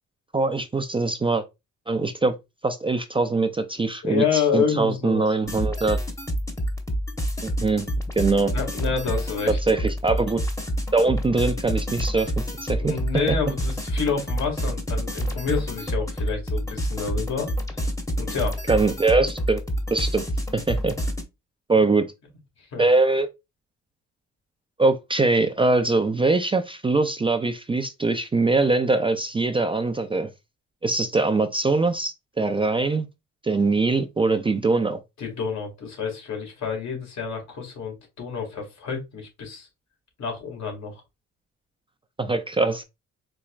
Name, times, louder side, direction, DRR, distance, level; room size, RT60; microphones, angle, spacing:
voice 1, 0.3-1.4 1.9-2.3 2.6-6.0 7.4-7.9 8.1-8.5 9.7-10.4 10.9-12.4 12.7-12.9 13.3-13.4 18.7-19.6 19.9-20.3 20.5-20.9 21.7-22.1 22.8-23.3 24.8-30.3 30.8-33.1 33.4-35.0 42.2-42.8, right 3 dB, 20° right, 0.4 m, -22 dB
voice 2, 4.0-5.2 8.5-9.6 12.9-17.5 18.2-18.6 21.9-22.0 22.6-22.8 35.2-39.7 40.2-41.0, left 6 dB, 65° left, 2.0 m, -28 dB
sound 1, 5.4-21.2, equal, 10° left, 1.0 m, -28 dB
4.4 x 3.0 x 2.4 m
cardioid pair, 90°, 30 cm